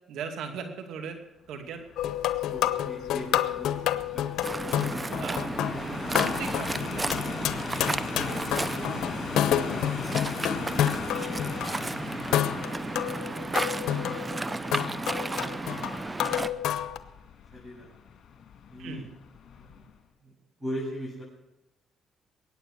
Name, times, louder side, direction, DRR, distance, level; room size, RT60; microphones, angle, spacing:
voice 1, 0.1-1.2 1.5-1.8 5.2-5.6 6.2-6.7 7.0-7.3 18.8-19.1, right 6 dB, 85° right, 5 dB, 2.4 m, -37 dB
sound 1, 1.7-20.0, left 7 dB, 65° left, 2.7 m, -41 dB
sound 2, 2.0-11.7 12.3-17.0, left 11 dB, 80° left, 0.8 m, -29 dB
voice 2, 2.4-4.3 4.7-4.9 5.5-6.0 8.0-9.1 9.4-10.0 11.7-12.9 13.2-13.8 14.4-16.7 17.5-18.0 18.7-19.1 19.5-19.9 20.2-21.2, equal, 5° right, -8 dB, 7.8 m, -42 dB
Waves surf, 4.4-16.5, right 2 dB, 20° right, 0.7 m, -33 dB
22.0 x 9.4 x 6.6 m, 1.0 s
cardioid pair, 90°, 0 cm